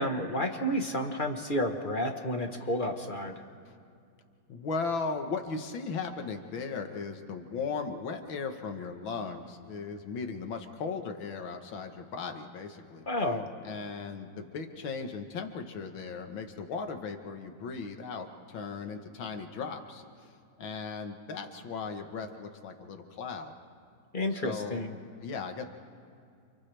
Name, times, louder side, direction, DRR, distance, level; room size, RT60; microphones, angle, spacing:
voice 1, 0.0-3.4 13.1-13.5 24.1-24.9, equal, 30° left, 4 dB, 1.2 m, -31 dB
voice 2, 4.5-13.1 13.6-20.3 20.6-23.5 24.3-24.8 25.2-25.6, left 4 dB, 85° left, 5 dB, 2.1 m, -37 dB
29.5 x 28.5 x 3.4 m, 2.4 s
omnidirectional pair, 2.1 m